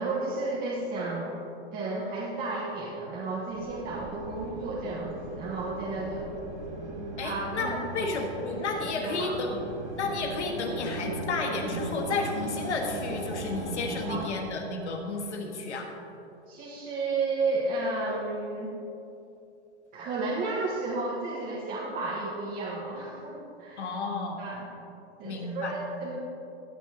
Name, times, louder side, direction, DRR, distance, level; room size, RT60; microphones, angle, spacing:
voice 1, 0.0-1.3 1.7-6.3 7.2-7.8 8.5-8.6 8.9-9.3 14.1-14.3 16.5-18.7 19.9-23.9 24.4-24.6 25.2-26.2, right 3 dB, 25° right, -5 dB, 1.3 m, -32 dB
sound 1, 3.5-14.3, right 1 dB, 85° right, 1.8 m, -37 dB
voice 2, 7.2-9.6 10.0-15.9 23.8-24.4 25.2-25.7, left 3 dB, 85° left, 2 dB, 1.7 m, -32 dB
15.0 x 8.7 x 2.9 m, 2.8 s
hypercardioid pair, 130°, 33 cm